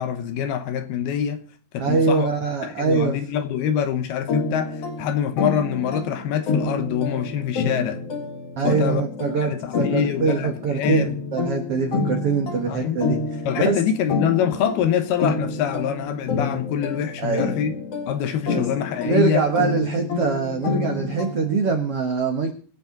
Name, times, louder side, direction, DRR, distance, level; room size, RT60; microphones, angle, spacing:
voice 1, 0.0-1.4 1.7-2.3 2.6-8.0 8.6-9.0 9.5-11.2 12.7-13.0 13.5-17.8 18.1-19.4, left 9 dB, 70° left, 2.7 m, -25 dB
voice 2, 1.8-3.2 8.6-13.2 13.6-13.8 17.2-17.7 18.5-18.6 19.0-22.6, right 5 dB, 80° right, 1.3 m, -23 dB
sound 1, 4.3-21.7, left 4 dB, 45° left, 2.5 m, -28 dB
23.0 x 8.4 x 3.9 m
omnidirectional pair, 5.0 m